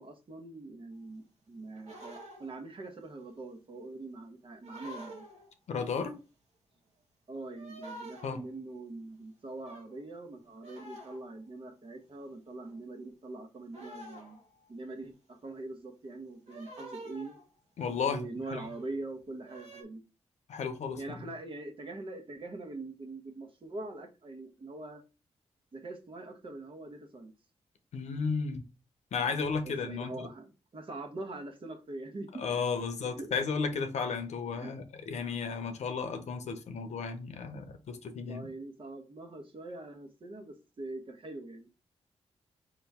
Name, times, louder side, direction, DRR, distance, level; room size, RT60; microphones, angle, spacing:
voice 1, 0.0-5.2 7.3-14.4 14.7-17.4 18.1-20.0 21.0-25.0 25.7-27.3 29.6-32.4 33.0-33.3 34.5-34.7 38.3-41.7, right 2 dB, 50° right, 1.2 m, -43 dB
sound 1, 1.7-2.6 4.6-5.5 7.5-8.5 9.6-10.0 10.6-11.4 12.6-12.8 13.7-14.7 16.5-17.6 18.5-18.9 19.4-19.8, right 1 dB, 80° right, 1.4 m, -48 dB
voice 2, 5.7-6.1 8.2-8.4 17.8-18.2 18.5-18.7 20.5-21.2 27.9-28.6 29.1-30.3 32.4-38.5, left 5 dB, 80° left, 0.8 m, -34 dB
4.9 x 3.0 x 3.5 m
cardioid pair, 80°, 12 cm